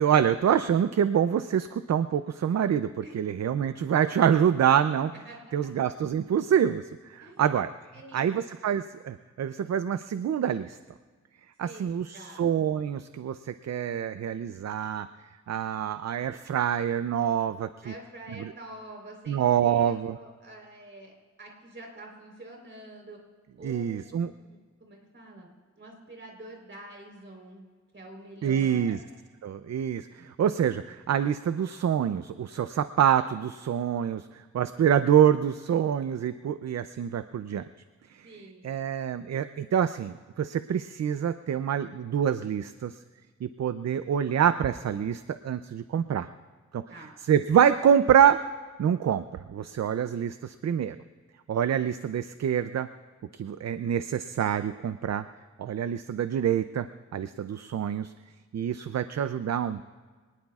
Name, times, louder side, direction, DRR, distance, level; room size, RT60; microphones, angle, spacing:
voice 1, 0.0-5.1 5.5-7.7 8.1-10.8 11.6-15.1 15.5-17.7 19.3-20.1 23.6-24.3 28.4-29.0 29.4-37.6 38.2-38.3 38.6-43.0 43.4-46.3 46.7-46.8 47.3-48.4 48.8-49.2 49.5-51.0 51.5-52.9 53.3-55.2 55.6-56.9 57.1-58.1 58.5-59.8, right 9 dB, 60° right, 11 dB, 0.5 m, -26 dB
voice 2, 7.9-8.4 11.6-12.4 17.8-21.1 21.4-23.2 23.6-25.5 25.8-27.6 27.9-29.0 38.2-38.8 46.9-47.2, right 1 dB, 40° right, 0 dB, 3.8 m, -46 dB
24.5 x 19.5 x 2.4 m, 1.5 s
wide cardioid pair, 160°, 29 cm